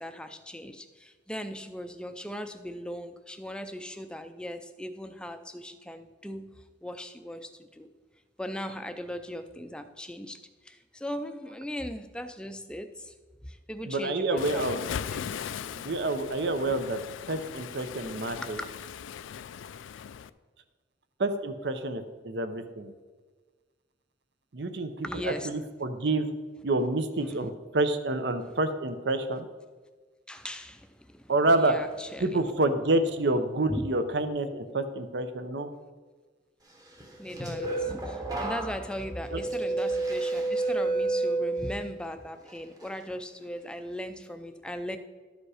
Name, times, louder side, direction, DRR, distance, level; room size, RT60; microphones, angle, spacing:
voice 1, 0.0-6.6 6.8-7.9 8.4-13.1 13.4-14.7 18.4-18.7 25.0-25.5 27.3-27.5 30.3-32.4 33.7-33.9 37.2-45.0, equal, 5° left, 8 dB, 0.4 m, -38 dB
voice 2, 13.8-14.8 15.7-17.0 17.3-18.6 21.2-22.9 24.5-26.3 26.6-29.5 31.3-31.7 32.2-35.7 39.3-39.4, right 2 dB, 60° right, 9 dB, 0.7 m, -28 dB
Waves surf, 14.4-20.3, left 8 dB, 85° left, 0.3 m, -39 dB
sound 1, 37.0-42.0 42.5-42.9, right 2 dB, 20° right, 1.0 m, -30 dB
12.5 x 5.2 x 4.8 m, 1.4 s
head